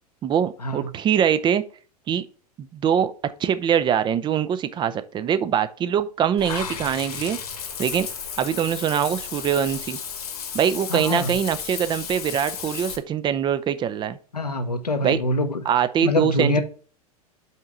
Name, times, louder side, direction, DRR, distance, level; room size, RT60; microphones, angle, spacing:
voice 1, 0.2-1.6 2.1-2.3 2.6-7.4 7.8-8.1 8.4-10.0 10.5-14.2 15.0-15.2 15.7-16.6, right 8 dB, 25° right, 0.5 m, -23 dB
Water / Bathtub (filling or washing), 6.4-13.0, left 7 dB, 70° left, 1.4 m, -33 dB
voice 2, 10.9-11.3 14.3-15.6 16.0-16.6, left 2 dB, 85° left, 1.0 m, -24 dB
5.6 x 4.7 x 5.5 m
figure-of-eight pair, 90°, 20 cm